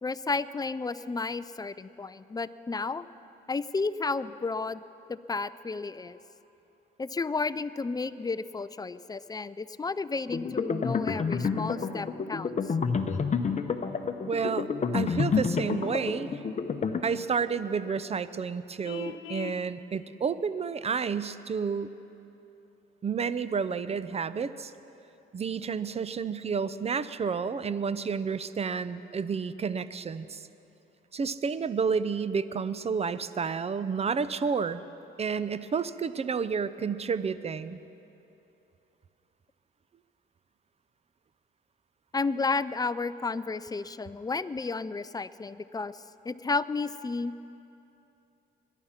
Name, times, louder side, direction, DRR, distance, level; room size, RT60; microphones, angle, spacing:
voice 1, 0.0-3.1 3.5-4.8 5.1-6.2 7.0-12.7 42.1-47.3, left 4 dB, 20° left, 15 dB, 0.4 m, -32 dB
sound 1, 10.3-17.0, left 5 dB, 35° left, 0.9 m, -29 dB
voice 2, 14.3-16.4 17.0-21.9 23.0-24.7 25.3-30.4 31.1-34.8 35.2-37.8, right 6 dB, 30° right, 15 dB, 0.6 m, -30 dB
Vehicle horn car horn honking, 18.8-19.6, left 11 dB, 85° left, 0.7 m, -39 dB
21.5 x 11.0 x 5.8 m, 2.9 s
cardioid pair, 90°, 20 cm